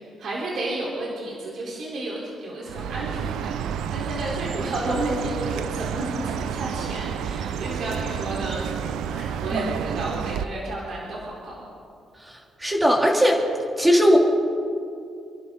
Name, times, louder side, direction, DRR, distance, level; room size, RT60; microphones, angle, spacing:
voice 1, 0.0-8.7 9.0-11.7, right 1 dB, 65° right, -5 dB, 4.0 m, -32 dB
Chirp tweet, 2.7-10.5, right 8 dB, 85° right, 0.7 m, -30 dB
voice 2, 12.2-13.4 13.8-14.2, equal, 15° right, 0 dB, 3.1 m, -19 dB
28.5 x 11.5 x 4.0 m, 2.5 s
cardioid pair, 90°, 0 cm